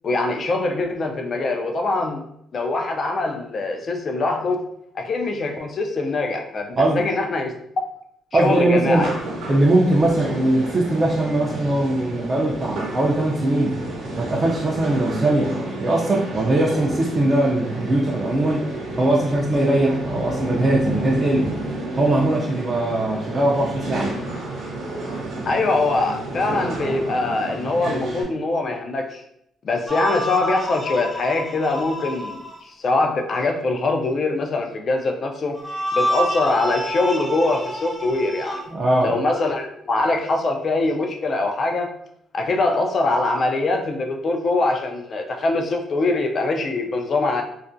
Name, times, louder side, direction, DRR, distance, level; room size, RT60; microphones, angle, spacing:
voice 1, 0.0-2.2 2.5-4.6 4.9-7.5 8.3-9.1 25.5-29.2 29.6-35.6 35.9-38.6 39.0-41.9 42.3-47.4, left 2 dB, 50° left, 4 dB, 0.4 m, -23 dB
voice 2, 8.3-9.1 9.5-13.8 14.2-15.5 15.8-18.7 18.9-21.6 22.0-24.1 38.7-39.1, right 1 dB, 35° right, -4 dB, 0.4 m, -20 dB
sound 1, 9.0-28.2, right 1 dB, 85° right, 0.7 m, -30 dB
sound 2, 29.9-32.6 35.5-38.6, equal, 10° left, 0.6 m, -28 dB
2.3 x 2.0 x 2.5 m, 0.75 s
cardioid pair, 90°, 0 cm